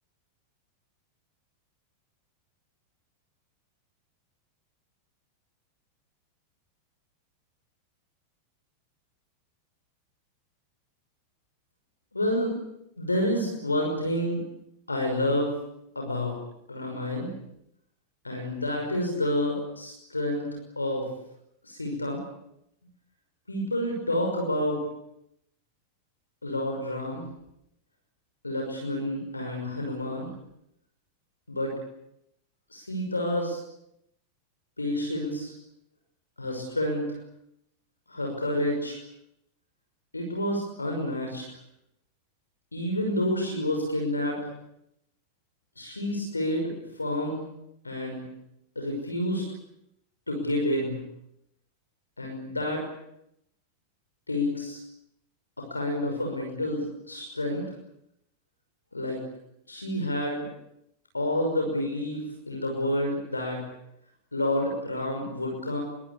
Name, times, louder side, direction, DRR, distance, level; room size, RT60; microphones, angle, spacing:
voice 1, 12.1-12.6 13.0-14.4 14.9-15.6 15.9-16.4 16.7-17.3 18.2-21.1 21.6-22.2 23.5-24.9 26.4-27.2 28.4-30.3 31.5-31.7 32.7-33.6 34.8-35.5 36.4-37.2 38.1-39.0 40.1-41.4 42.7-44.5 45.8-47.4 47.8-48.2 48.8-49.4 50.3-51.0 52.2-52.8 54.3-54.8 55.6-57.6 58.9-59.2 59.7-60.4 61.1-63.6 64.3-65.8, left 1 dB, 80° left, 2 dB, 5.9 m, -29 dB
25.5 x 24.0 x 8.6 m, 0.80 s
figure-of-eight pair, 90°, 0 cm